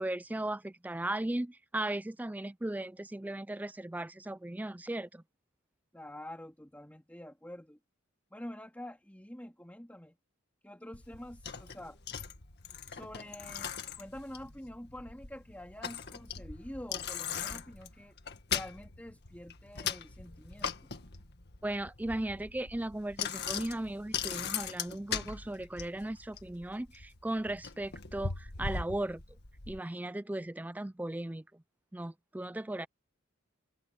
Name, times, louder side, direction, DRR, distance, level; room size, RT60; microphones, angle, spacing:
voice 1, 0.0-5.2 21.6-29.2 29.7-31.6 31.9-32.9, right 1 dB, 10° right, 0.4 m, -37 dB
voice 2, 5.9-7.8 8.3-10.2 10.6-12.0 12.9-20.9, left 1 dB, 10° left, 2.7 m, -47 dB
Bicycle, 10.9-29.8, left 7 dB, 50° left, 2.0 m, -40 dB
head